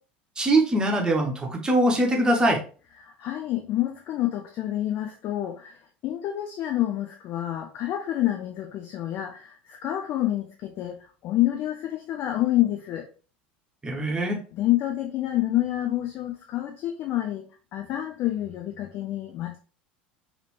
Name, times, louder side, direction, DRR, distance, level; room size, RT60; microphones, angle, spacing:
voice 1, 0.4-2.6 13.8-14.4, right 1 dB, 15° right, 1 dB, 1.1 m, -22 dB
voice 2, 3.0-13.1 14.5-17.4 17.7-19.6, left 14 dB, 45° left, 3 dB, 0.5 m, -28 dB
4.9 x 2.9 x 3.1 m, 0.38 s
figure-of-eight pair, 70°, 5 cm